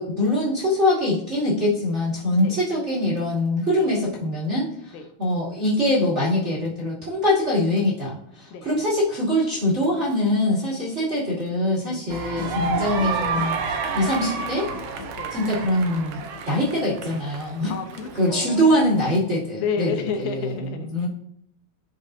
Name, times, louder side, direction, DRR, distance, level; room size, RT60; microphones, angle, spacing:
voice 1, 0.0-4.7 5.2-14.7 15.3-16.2 16.5-17.7 18.1-20.5 20.9-21.1, left 1 dB, 20° right, -9 dB, 2.4 m, -23 dB
voice 2, 11.9-12.2 15.2-15.3 17.7-18.8 19.6-21.1, left 6 dB, 90° left, 4 dB, 2.6 m, -31 dB
sound 1, 12.1-16.8, left 4 dB, 70° left, 3.4 m, -38 dB
sound 2, 12.1-19.2, right 5 dB, 75° right, 2.2 m, -31 dB
12.5 x 5.3 x 2.7 m, 0.70 s
omnidirectional pair, 4.0 m